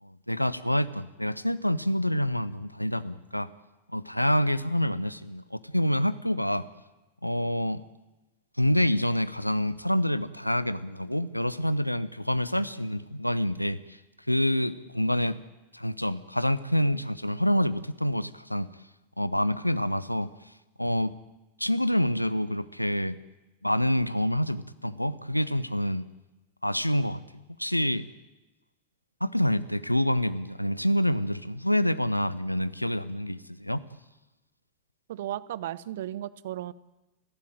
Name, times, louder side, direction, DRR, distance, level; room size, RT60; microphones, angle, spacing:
voice 1, 0.0-3.5 3.9-6.7 7.2-7.8 8.6-14.0 14.3-15.4 15.7-18.7 19.2-20.3 20.8-21.2 21.6-23.2 23.6-26.1 26.6-27.2 27.6-28.0 29.2-33.8, equal, 90° left, 17 dB, 0.8 m, -27 dB
voice 2, 35.1-36.7, right 13 dB, 55° right, 20 dB, 0.8 m, -35 dB
30.0 x 12.5 x 9.1 m, 1.0 s
figure-of-eight pair, 90°, 0 cm